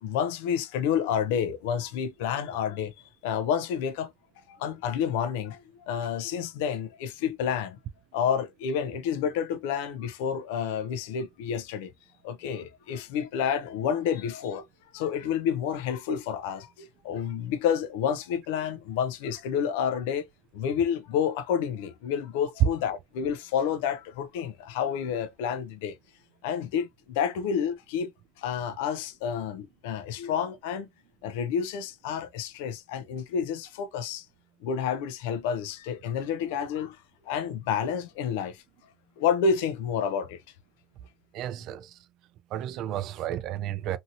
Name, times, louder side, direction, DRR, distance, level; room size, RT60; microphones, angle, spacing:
voice 1, 0.0-2.9 3.2-4.1 4.5-5.6 5.9-7.8 8.1-11.9 12.2-14.6 14.9-20.2 20.5-26.0 26.4-28.1 28.4-30.9 31.2-34.3 34.6-37.0 37.3-38.6 39.2-40.4, left 7 dB, 85° left, 0.5 m, -29 dB
voice 2, 41.3-41.9 42.5-44.0, right 11 dB, 60° right, 0.3 m, -32 dB
2.7 x 2.7 x 2.5 m
supercardioid pair, 110°, 0 cm